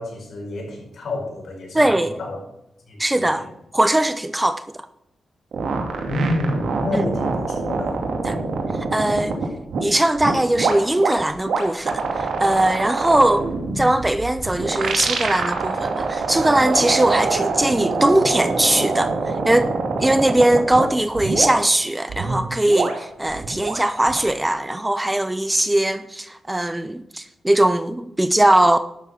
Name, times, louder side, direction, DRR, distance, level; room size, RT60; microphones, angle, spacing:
voice 1, 0.0-2.4 2.8-3.5 6.1-8.0, left 1 dB, 60° left, 5.1 m, -28 dB
voice 2, 1.7-2.1 3.0-3.5 3.7-4.6 6.9-7.0 8.2-8.4 8.9-9.4 9.8-13.5 13.8-19.7 20.0-28.8, right 1 dB, 10° right, 0.5 m, -20 dB
sound 1, 5.5-9.8 10.1-20.8 21.1-21.5 22.1-24.3, right 4 dB, 80° right, 2.4 m, -25 dB
12.0 x 6.9 x 6.3 m
cardioid pair, 100°, 0 cm